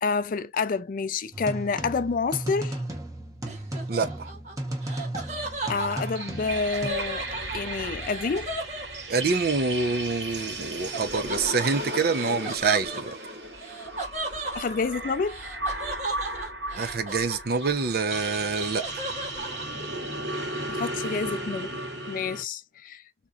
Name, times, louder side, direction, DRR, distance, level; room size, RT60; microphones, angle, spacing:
voice 1, 0.0-2.8 5.7-7.3 7.5-8.5 14.5-15.4 20.7-21.7 22.1-23.0, left 4 dB, 50° left, 0.4 m, -28 dB
sound 1, 1.3-6.9, right 1 dB, 20° right, 0.8 m, -35 dB
Laughter, 3.5-9.5 10.9-17.9 18.2-19.6, right 2 dB, 40° right, 1.6 m, -36 dB
voice 2, 3.9-4.3 9.1-13.1 16.7-19.0, right 4 dB, 55° right, 0.6 m, -26 dB
sound 2, 5.5-22.4, right 1 dB, 85° right, 2.0 m, -35 dB
3.7 x 3.0 x 2.3 m
head